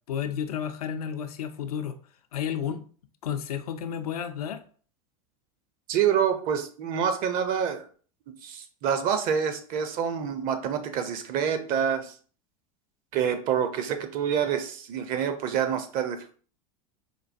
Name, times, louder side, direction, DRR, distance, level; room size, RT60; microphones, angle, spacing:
voice 1, 0.1-1.9 2.3-2.8 3.2-4.6, left 8 dB, 85° left, 8 dB, 0.4 m, -31 dB
voice 2, 5.9-7.9 8.4-12.1 13.1-16.3, right 8 dB, 50° right, 8 dB, 0.6 m, -27 dB
4.7 x 2.2 x 2.5 m, 0.43 s
hypercardioid pair, 95°, 19 cm